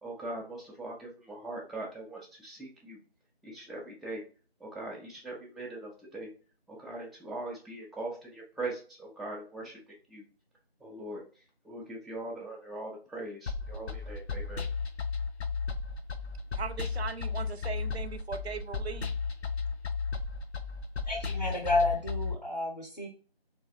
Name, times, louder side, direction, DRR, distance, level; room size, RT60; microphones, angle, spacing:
voice 1, 0.0-3.0 3.4-4.2 4.6-6.3 6.7-9.8 10.1-10.2 10.8-11.2 11.6-14.6, right 2 dB, ahead, -4 dB, 0.4 m, -41 dB
sound 1, 13.5-22.3, left 5 dB, 85° left, 0.5 m, -34 dB
voice 2, 16.5-19.1, right 5 dB, 75° right, 11 dB, 0.5 m, -38 dB
voice 3, 21.1-23.1, left 2 dB, 40° left, 0 dB, 0.6 m, -30 dB
4.1 x 2.3 x 2.4 m, 0.38 s
figure-of-eight pair, 180°, 32 cm